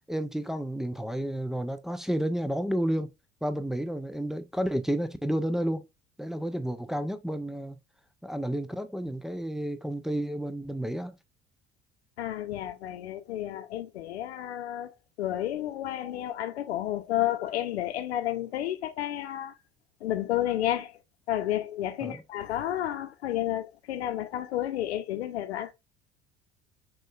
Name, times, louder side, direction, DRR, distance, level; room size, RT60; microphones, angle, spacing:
voice 1, 0.1-3.1 3.4-5.8 6.2-7.8 8.2-11.1 22.0-22.2, equal, ahead, 0.3 m, -31 dB
voice 2, 12.2-14.9 15.2-19.5 20.0-20.9 21.3-25.7, left 13 dB, 70° left, 0.7 m, -31 dB
6.2 x 2.4 x 2.3 m
figure-of-eight pair, 60°, 33 cm